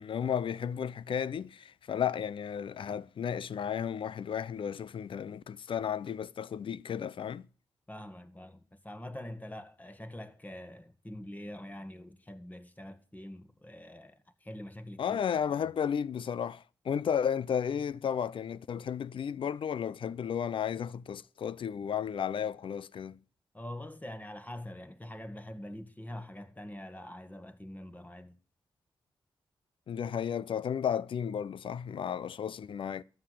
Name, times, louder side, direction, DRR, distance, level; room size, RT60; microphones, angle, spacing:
voice 1, 0.0-7.5 15.0-23.2 29.9-33.0, left 8 dB, 70° left, 0.6 m, -33 dB
voice 2, 7.9-15.2 23.5-28.4, left 1 dB, 15° left, 2.0 m, -44 dB
13.0 x 8.0 x 8.6 m
supercardioid pair, 45°, 9 cm